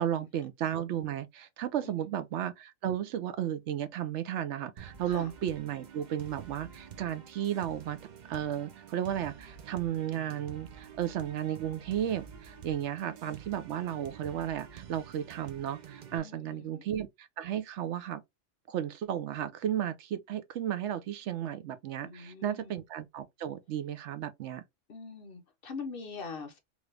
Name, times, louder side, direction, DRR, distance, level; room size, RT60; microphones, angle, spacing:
voice 1, 0.0-8.0 8.3-18.2 18.7-24.6, right 10 dB, 70° right, 0.9 m, -34 dB
sound 1, 4.8-16.2, right 8 dB, 55° right, 0.5 m, -49 dB
voice 2, 16.1-16.8 22.0-22.7 24.9-26.6, left 4 dB, 55° left, 0.8 m, -43 dB
3.0 x 2.4 x 3.2 m
omnidirectional pair, 1.3 m